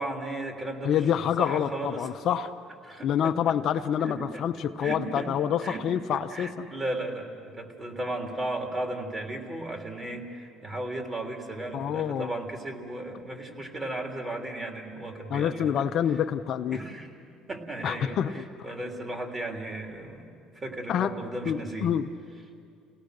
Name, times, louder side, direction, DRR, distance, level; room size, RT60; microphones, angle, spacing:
voice 1, 0.0-1.1 1.4-2.1 2.8-3.6 4.0-4.4 4.8-5.8 6.3-16.2 16.7-17.1 17.5-21.9, right 1 dB, 20° right, 3 dB, 3.4 m, -35 dB
voice 2, 0.8-2.5 3.0-6.7 11.7-12.3 15.3-16.8 17.8-18.4 20.9-21.2 21.5-22.1, left 9 dB, 55° left, 7 dB, 0.8 m, -27 dB
29.0 x 18.0 x 6.6 m, 2.4 s
cardioid pair, 100°, 0 cm